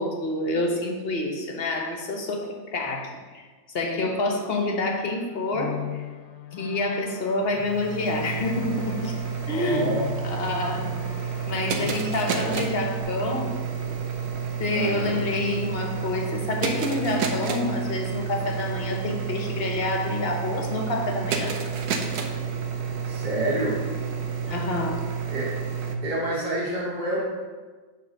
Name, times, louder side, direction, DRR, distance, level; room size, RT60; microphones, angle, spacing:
voice 1, 0.0-3.4 3.7-6.0 6.6-9.2 9.5-10.9 11.5-13.6 14.6-21.6 24.5-25.1, left 2 dB, 45° left, 2 dB, 0.9 m, -28 dB
sound 1, 5.0-13.0, left 11 dB, 75° left, 1.2 m, -39 dB
sound 2, 7.5-26.0, right 6 dB, 70° right, 1.2 m, -30 dB
voice 2, 9.5-10.1 12.3-12.7 14.7-15.2 23.0-23.8 25.3-25.5 26.0-27.2, right 1 dB, 35° right, -6 dB, 0.9 m, -28 dB
7.5 x 3.3 x 6.3 m, 1.4 s
omnidirectional pair, 1.8 m